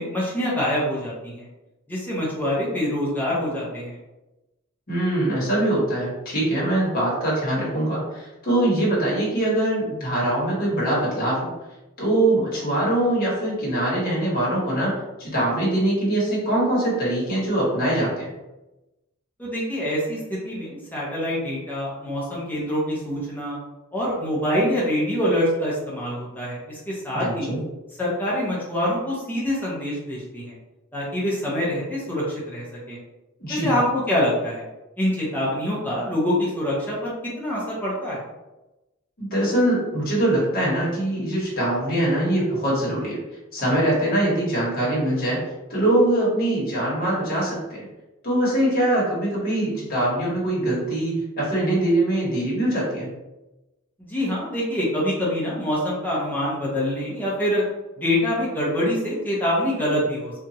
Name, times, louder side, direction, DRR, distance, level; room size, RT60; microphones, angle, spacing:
voice 1, 0.0-1.5 1.9-4.0 19.4-23.6 23.9-27.5 28.0-30.5 30.9-33.0 33.5-34.7 35.0-38.2 54.0-57.6 58.0-60.3, left 1 dB, 10° left, -6 dB, 0.7 m, -25 dB
voice 2, 4.9-11.5 12.0-18.3 27.1-27.6 33.4-33.7 39.2-43.2 43.5-45.4 45.7-47.8 48.2-53.1, right 1 dB, 45° left, -5 dB, 1.1 m, -23 dB
2.9 x 2.4 x 2.7 m, 1.0 s
head